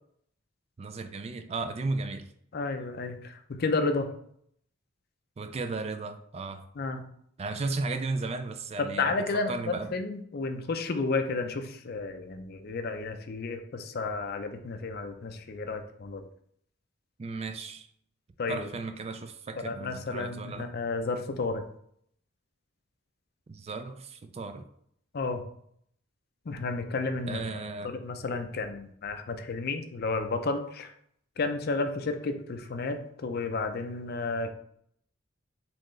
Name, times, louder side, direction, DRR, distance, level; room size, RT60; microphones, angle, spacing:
voice 1, 0.8-2.2 5.4-6.6 7.4-9.9 17.2-17.9 18.5-20.7 23.5-24.6 27.3-27.9, right 3 dB, 30° right, 9 dB, 0.3 m, -35 dB
voice 2, 2.5-4.1 6.8-7.0 8.8-16.2 18.4-18.7 19.6-21.6 25.1-25.4 26.5-27.4 27.8-30.9 31.4-34.5, left 3 dB, 50° left, 7 dB, 0.5 m, -32 dB
4.3 x 3.7 x 3.1 m, 0.68 s
head